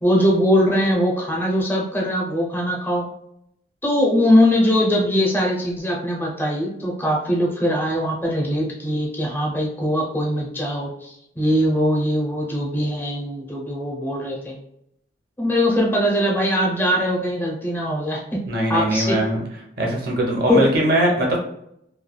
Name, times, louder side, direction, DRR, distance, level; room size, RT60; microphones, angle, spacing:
voice 1, 0.0-3.1 3.8-14.6 15.4-18.4 18.7-19.2 20.5-20.6, equal, 10° left, -2 dB, 0.5 m, -21 dB
voice 2, 18.5-19.4 19.8-21.4, right 1 dB, 55° right, -1 dB, 0.8 m, -20 dB
3.1 x 2.3 x 2.2 m, 0.76 s
head